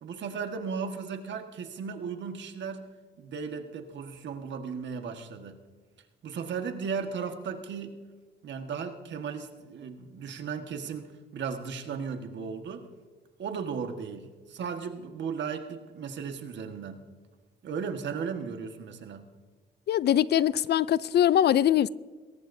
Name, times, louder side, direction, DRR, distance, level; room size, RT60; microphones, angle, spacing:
voice 1, 0.0-2.9 3.2-5.6 6.2-8.0 8.4-12.9 13.4-17.0 17.6-19.3, right 6 dB, 65° right, 1.6 m, -36 dB
voice 2, 19.9-21.9, left 11 dB, 55° left, 0.4 m, -22 dB
22.0 x 18.0 x 2.7 m
cardioid pair, 90°, 20 cm